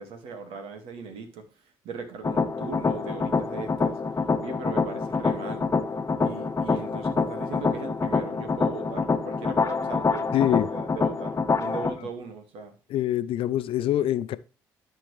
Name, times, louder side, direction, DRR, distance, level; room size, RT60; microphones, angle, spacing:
voice 1, 0.0-4.0 4.4-5.7 6.2-12.7, right 4 dB, 75° right, 2.1 m, -39 dB
sound 1, 2.2-11.9, left 4 dB, 30° left, 1.1 m, -26 dB
voice 2, 10.3-10.7 12.9-14.4, left 12 dB, 70° left, 0.7 m, -25 dB
13.5 x 4.6 x 3.3 m
hypercardioid pair, 55°, 10 cm